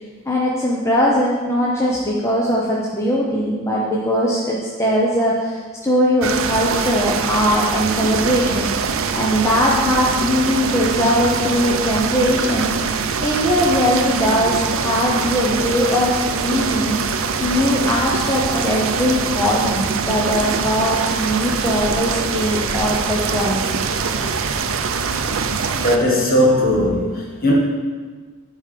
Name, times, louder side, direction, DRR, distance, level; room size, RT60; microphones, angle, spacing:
voice 1, 0.3-8.7 9.1-12.8 13.2-23.8, equal, 15° left, -4 dB, 0.8 m, -20 dB
sound 1, 6.2-26.0, right 5 dB, 70° right, 0.5 m, -23 dB
voice 2, 25.7-27.5, left 1 dB, 45° left, -2 dB, 1.6 m, -17 dB
11.0 x 4.7 x 5.1 m, 1.5 s
head